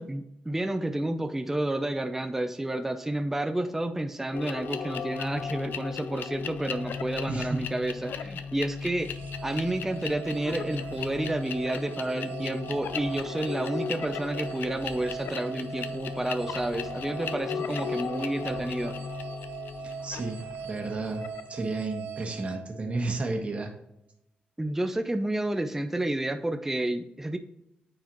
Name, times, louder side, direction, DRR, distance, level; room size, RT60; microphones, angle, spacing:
voice 1, 0.1-9.1 9.4-19.0 24.6-27.4, right 1 dB, 10° right, 7 dB, 0.5 m, -30 dB
sound 1, 4.3-21.5, left 6 dB, 85° left, 0.5 m, -36 dB
voice 2, 7.3-7.6 19.8-21.2 21.5-23.7, right 3 dB, 40° right, 2 dB, 1.6 m, -32 dB
sound 2, 9.0-23.4, right 8 dB, 85° right, 0.6 m, -42 dB
8.8 x 4.8 x 3.0 m, 0.76 s
cardioid pair, 110°, 3 cm